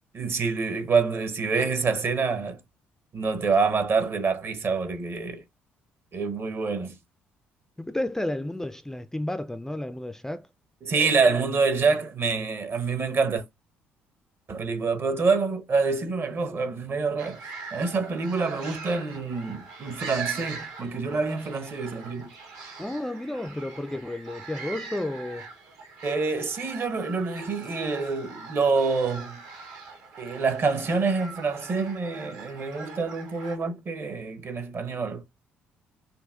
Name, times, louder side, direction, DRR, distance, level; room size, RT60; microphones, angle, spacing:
voice 1, 0.1-2.6 3.1-5.4 6.1-6.9 10.8-13.4 14.5-17.4 17.7-22.3 26.0-29.4 30.2-35.2, right 4 dB, 40° right, 0.9 m, -26 dB
voice 2, 7.8-10.5 22.8-25.5, left 1 dB, 5° left, 0.3 m, -32 dB
sound 1, 17.2-33.5, right 5 dB, 65° right, 1.3 m, -42 dB
5.4 x 2.3 x 2.4 m
figure-of-eight pair, 45°, 6 cm